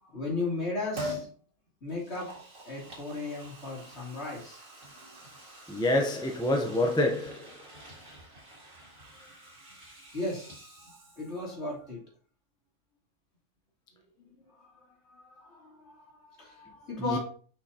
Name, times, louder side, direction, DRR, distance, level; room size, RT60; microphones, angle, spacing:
voice 1, 0.0-1.3 1.8-2.3 2.6-4.6 5.0-5.5 9.6-9.8 10.1-12.0 14.2-17.2, left 3 dB, 45° left, 3.2 m, -37 dB
Liquid, 1.0-1.3 1.9-11.5 11.8-11.9, equal, 65° right, 2.6 m, -45 dB
voice 2, 5.7-7.5 17.0-17.2, left 1 dB, 5° left, 0.5 m, -27 dB
6.4 x 5.9 x 2.9 m
omnidirectional pair, 1.5 m